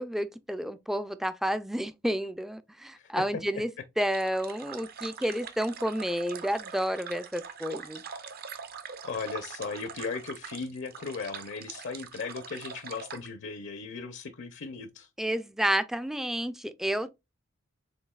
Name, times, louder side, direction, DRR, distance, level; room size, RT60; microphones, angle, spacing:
voice 1, 0.0-3.7 4.0-8.0 15.2-17.1, equal, ahead, 0.3 m, -30 dB
sound 1, 4.0-13.3, right 6 dB, 50° right, 0.6 m, -43 dB
voice 2, 9.0-15.1, left 4 dB, 65° left, 0.6 m, -37 dB
7.1 x 2.6 x 2.2 m
head